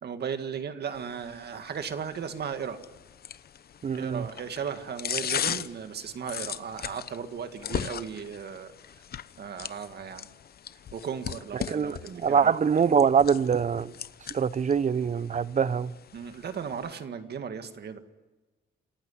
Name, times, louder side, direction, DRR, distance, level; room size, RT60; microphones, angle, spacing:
voice 1, 0.0-2.8 4.0-8.7 9.4-10.3 10.9-12.5 16.1-18.0, right 7 dB, 55° right, 2.0 m, -36 dB
sound 1, 1.0-16.9, left 9 dB, 50° left, 0.9 m, -39 dB
voice 2, 3.8-4.3 11.5-13.9 14.3-15.9, right 6 dB, 40° right, 0.8 m, -24 dB
28.0 x 15.5 x 9.8 m
cardioid pair, 90°, 20 cm